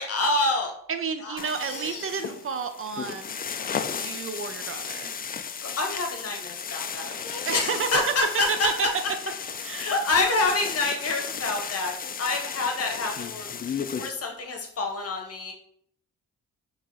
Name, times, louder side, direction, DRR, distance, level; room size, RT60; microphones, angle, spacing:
voice 1, 0.0-0.7 1.2-2.1 5.6-8.7 9.8-15.5, left 3 dB, 50° left, 3 dB, 1.1 m, -28 dB
voice 2, 0.9-3.4 3.9-5.1 7.5-8.0 8.6-8.7 9.6-9.9, right 6 dB, 45° right, 8 dB, 0.5 m, -31 dB
sound 1, 1.4-14.1, left 6 dB, 30° left, 0.3 m, -34 dB
5.8 x 3.0 x 3.0 m, 0.66 s
cardioid pair, 100°, 32 cm